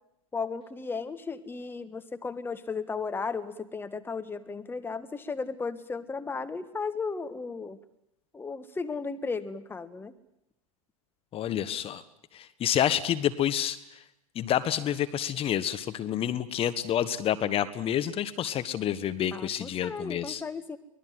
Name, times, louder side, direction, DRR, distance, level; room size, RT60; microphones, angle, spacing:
voice 1, 0.3-7.8 8.3-10.1 19.3-20.8, left 4 dB, 10° left, 11 dB, 1.4 m, -35 dB
voice 2, 11.3-12.0 12.3-13.8 14.3-20.4, left 10 dB, 30° left, 12 dB, 1.4 m, -28 dB
24.0 x 20.0 x 9.4 m, 0.81 s
hypercardioid pair, 100°, 18 cm